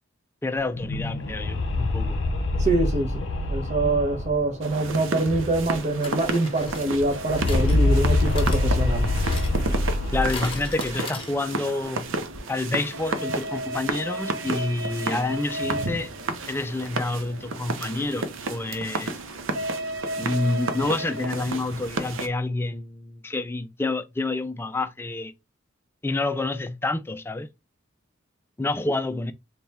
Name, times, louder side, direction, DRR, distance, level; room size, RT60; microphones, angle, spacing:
voice 1, 0.4-2.2 10.1-12.1 12.5-16.1 16.5-19.1 20.2-25.3 26.0-27.5 28.6-29.3, left 2 dB, 10° left, 0.3 m, -28 dB
sound 1, 0.6-5.9 6.2-6.3 6.6-10.9, left 2 dB, 65° left, 0.6 m, -25 dB
voice 2, 2.6-3.2 3.5-9.1, right 2 dB, 35° right, 0.8 m, -25 dB
sound 2, 4.6-22.3, right 2 dB, 80° right, 0.6 m, -31 dB
sound 3, 4.7-4.9 6.0-11.8 12.0-12.1 12.3-12.4, left 4 dB, 25° left, 0.8 m, -40 dB
3.4 x 2.3 x 4.1 m
head